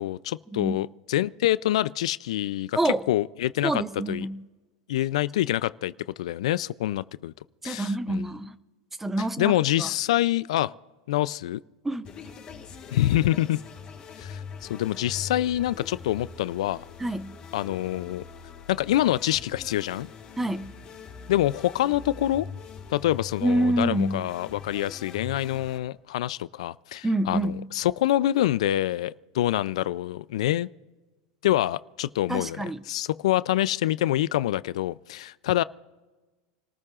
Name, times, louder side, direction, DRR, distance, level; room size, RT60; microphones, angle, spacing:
voice 1, 0.0-3.8 4.1-4.3 4.9-5.9 6.2-7.3 7.6-8.2 9.4-10.7 11.1-11.6 12.9-13.6 14.2-16.8 17.5-18.2 18.7-20.1 21.3-22.5 22.9-30.7 31.4-35.6, left 14 dB, 85° left, 0.4 m, -26 dB
voice 2, 3.6-4.4 7.6-8.6 9.0-9.9 11.8-12.1 17.0-17.3 20.4-20.7 23.4-24.2 27.0-27.7 32.3-32.8, right 1 dB, 10° right, 0.5 m, -27 dB
sound 1, 12.0-25.8, left 6 dB, 30° left, 3.4 m, -42 dB
28.5 x 14.0 x 2.5 m
supercardioid pair, 135°, 3 cm